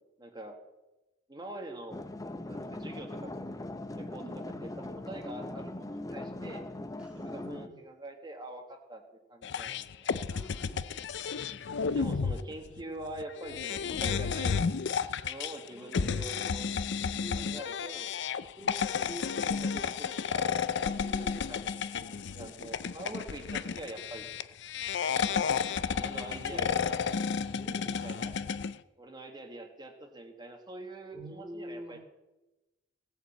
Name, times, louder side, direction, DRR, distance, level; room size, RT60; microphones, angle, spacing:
voice 1, 0.2-0.6 1.3-2.0 2.5-3.3 3.9-4.2 4.6-6.7 7.1-9.0 9.3-10.1 11.9-14.6 15.2-16.7 17.4-18.1 19.4-24.3 25.1-25.4 25.9-27.0 28.0-28.4 29.0-32.0, right 1 dB, 25° right, 3 dB, 1.6 m, -44 dB
sound 1, 1.9-7.7, left 1 dB, 20° left, 0.6 m, -40 dB
voice 2, 4.2-4.6 7.0-7.8 10.3-10.8 15.7-16.5 17.2-17.5 18.6-19.9 21.1-21.5 25.6-26.8 27.6-28.0 31.1-32.0, equal, 5° right, 1 dB, 2.5 m, -47 dB
sound 2, 9.4-28.7, left 6 dB, 65° left, 0.5 m, -32 dB
17.0 x 7.2 x 7.9 m, 1.0 s
head